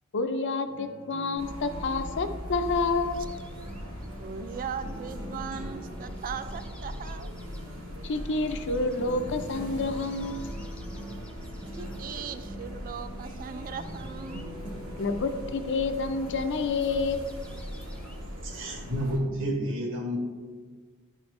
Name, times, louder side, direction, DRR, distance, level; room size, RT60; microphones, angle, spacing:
voice 1, 0.1-3.2 8.0-10.5 15.0-17.2, left 3 dB, 55° left, 8 dB, 0.5 m, -28 dB
sound 1, 0.7-4.0 4.6-6.8 8.5-8.6 9.0-12.6 13.7-18.7, equal, 85° left, 1.2 m, -47 dB
sound 2, 1.3-19.2, equal, 85° right, 1.9 m, -40 dB
sound 3, 2.7-18.4, equal, 5° left, 0.6 m, -47 dB
voice 2, 4.2-7.3 11.7-14.6, right 6 dB, 40° right, 11 dB, 0.4 m, -38 dB
voice 3, 18.4-20.2, equal, 65° right, 0 dB, 1.6 m, -30 dB
11.0 x 4.4 x 3.2 m, 1.5 s
head